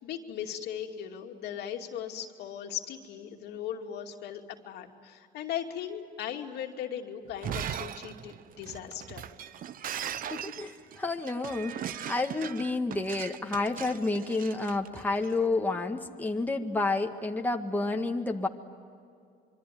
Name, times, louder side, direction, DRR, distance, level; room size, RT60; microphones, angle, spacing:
voice 1, 0.0-9.3, left 9 dB, 80° left, 3 dB, 2.6 m, -38 dB
Shatter, 7.3-15.3, right 9 dB, 55° right, 0.9 m, -39 dB
voice 2, 10.3-18.5, left 3 dB, 10° left, 3 dB, 1.8 m, -30 dB
26.0 x 24.0 x 9.3 m, 2.4 s
cardioid pair, 110°, 17 cm